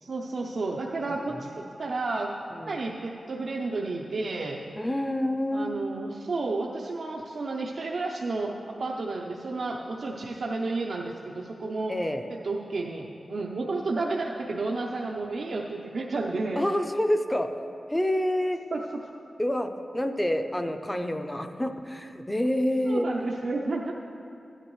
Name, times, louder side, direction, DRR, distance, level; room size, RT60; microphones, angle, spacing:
voice 1, 0.0-1.5 1.8-2.3 2.7-4.6 5.5-8.5 8.8-11.9 12.3-16.6 18.7-18.8 22.8-23.9, right 3 dB, 70° right, -2 dB, 0.6 m, -31 dB
voice 2, 4.8-5.7 11.9-12.3 16.6-17.5 17.9-18.6 19.4-19.7 19.9-23.1, left 1 dB, 10° left, 7 dB, 0.6 m, -27 dB
15.0 x 10.0 x 3.1 m, 2.8 s
wide cardioid pair, 105°, 0 cm